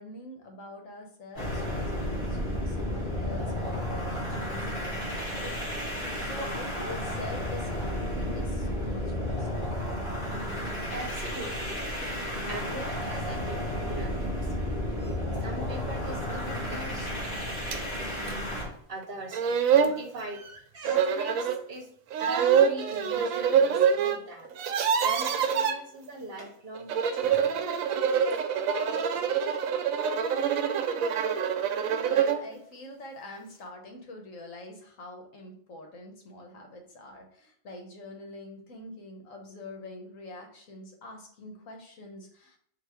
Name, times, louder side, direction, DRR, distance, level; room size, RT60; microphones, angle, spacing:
voice 1, 0.0-9.8 31.9-42.6, left 2 dB, 75° left, 3 dB, 1.4 m, -45 dB
sound 1, 1.3-18.7, left 1 dB, 35° left, 1.9 m, -32 dB
voice 2, 10.9-11.8 12.1-24.5 25.0-27.6, right 1 dB, 50° right, 2 dB, 0.9 m, -41 dB
sound 2, 17.7-17.8 18.3-18.4 19.0-19.1 19.3-20.0 20.8-21.6 22.1-24.2 24.4-25.7 26.7-32.5, right 7 dB, 85° right, 1.0 m, -25 dB
4.0 x 2.7 x 4.7 m, 0.65 s
omnidirectional pair, 1.4 m